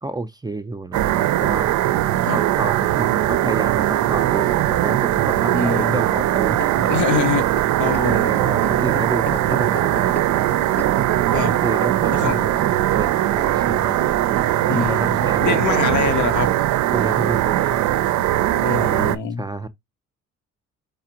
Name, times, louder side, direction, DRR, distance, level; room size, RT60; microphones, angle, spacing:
voice 1, 0.0-1.7 2.3-6.9 7.9-10.5 11.5-14.0 14.7-16.1 16.9-17.8 19.4-19.7, right 2 dB, 15° right, 0.4 m, -30 dB
sound 1, 0.9-19.2, right 13 dB, 70° right, 0.4 m, -20 dB
voice 2, 5.5-6.0 6.9-7.5 7.8-8.3 11.3-11.5 12.2-12.4 14.7-16.5 18.6-19.4, left 7 dB, 75° left, 0.8 m, -24 dB
sound 2, 6.4-11.2 11.9-12.0, left 6 dB, 35° left, 0.6 m, -36 dB
4.9 x 2.5 x 2.8 m
cardioid pair, 90°, 30 cm